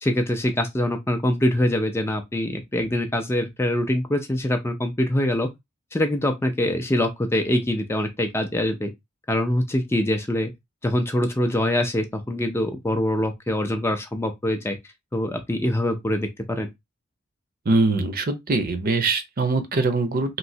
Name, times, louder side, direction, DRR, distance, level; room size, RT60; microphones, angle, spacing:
voice 1, 0.0-5.5 5.9-8.9 9.3-10.5 10.8-14.8 15.1-16.7, left 1 dB, 10° left, 0.4 m, -24 dB
voice 2, 17.7-20.4, right 3 dB, 45° right, 0.6 m, -22 dB
3.1 x 2.7 x 2.7 m
head